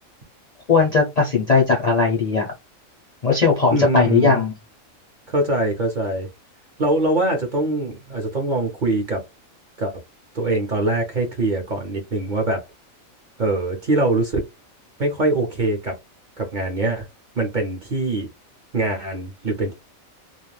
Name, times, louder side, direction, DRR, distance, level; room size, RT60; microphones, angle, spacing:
voice 1, 0.7-2.5 3.2-4.5, left 4 dB, 45° left, 0.5 m, -18 dB
voice 2, 3.7-4.4 5.3-6.3 6.8-9.2 9.8-9.9 10.3-12.6 13.4-14.5 15.0-15.9 16.4-17.0 17.4-18.3 18.7-19.7, right 2 dB, 45° right, 0.7 m, -23 dB
2.4 x 2.1 x 3.1 m
omnidirectional pair, 1.4 m